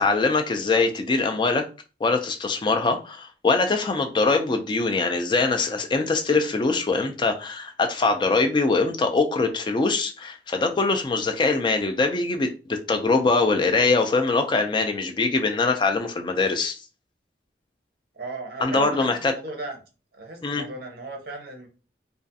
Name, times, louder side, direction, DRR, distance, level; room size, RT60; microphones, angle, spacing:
voice 1, 0.0-1.7 2.0-16.8 18.6-19.3 20.4-20.6, left 3 dB, 25° left, 0.3 m, -23 dB
voice 2, 18.1-19.8 20.1-21.7, right 3 dB, 55° right, 0.6 m, -36 dB
2.3 x 2.3 x 2.6 m
head